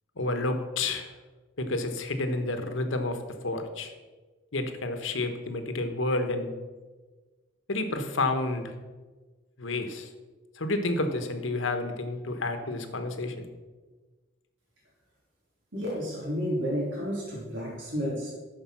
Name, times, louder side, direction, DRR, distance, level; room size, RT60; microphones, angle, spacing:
voice 1, 0.2-1.1 1.6-3.2 3.4-3.9 4.5-6.5 7.7-8.6 9.6-10.1 10.6-13.5, left 2 dB, 70° left, 7 dB, 1.1 m, -30 dB
voice 2, 15.7-18.3, equal, 65° right, -4 dB, 3.4 m, -31 dB
13.0 x 5.1 x 5.9 m, 1.3 s
head